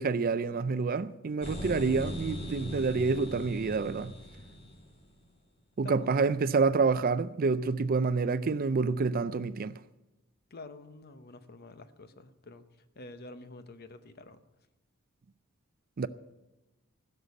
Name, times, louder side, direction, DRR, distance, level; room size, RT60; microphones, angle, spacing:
voice 1, 0.0-4.1 5.8-9.8 16.0-16.1, right 4 dB, 45° right, 0.4 m, -28 dB
sound 1, 1.4-5.2, equal, 30° left, 2.6 m, -40 dB
voice 2, 5.8-6.3 10.5-12.7 13.0-14.4, left 2 dB, 50° left, 0.8 m, -48 dB
15.5 x 6.8 x 8.1 m
head